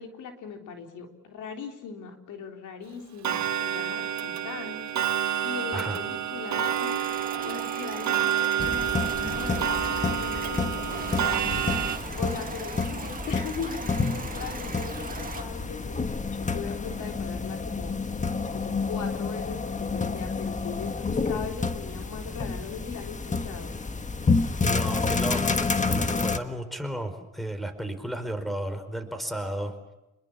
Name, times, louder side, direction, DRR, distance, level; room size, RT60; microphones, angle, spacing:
voice 1, 0.0-7.1 7.4-9.6 10.1-16.0 16.4-18.0 18.5-23.7, left 6 dB, 80° left, 4 dB, 3.8 m, -40 dB
Clock, 3.2-12.0, right 10 dB, 65° right, 1.7 m, -29 dB
sound 1, 6.6-15.4, right 4 dB, 30° right, 1.9 m, -39 dB
sound 2, 8.6-26.4, left 4 dB, 25° left, 1.6 m, -29 dB
voice 2, 24.6-25.6 25.8-29.7, right 1 dB, ahead, 9 dB, 4.7 m, -33 dB
29.5 x 21.0 x 7.1 m, 0.96 s
cardioid pair, 90°, 30 cm